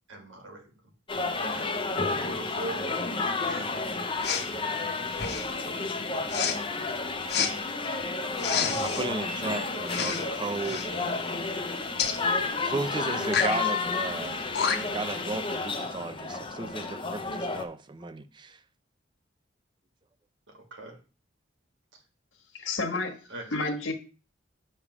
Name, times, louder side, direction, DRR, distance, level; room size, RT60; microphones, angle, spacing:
voice 1, 0.1-0.7 1.5-1.8 2.4-3.8 5.3-5.5 20.5-21.0 23.3-23.5, right 2 dB, 80° right, 1.7 m, -42 dB
sound 1, 1.1-17.7, left 3 dB, 25° left, 0.7 m, -31 dB
Respiratory sounds, 4.2-4.5 5.1-5.6 6.3-6.6 7.3-7.5 8.4-9.1 9.9-10.3 10.6-10.9 12.0-12.2 13.2-13.6 14.2-14.3 14.5-15.0, left 6 dB, 55° left, 0.9 m, -29 dB
voice 2, 8.8-11.5 12.6-14.4 14.7-18.6, right 3 dB, 25° right, 0.4 m, -35 dB
voice 3, 22.5-23.2 23.5-23.9, left 3 dB, 90° left, 1.4 m, -30 dB
7.0 x 3.4 x 6.0 m
head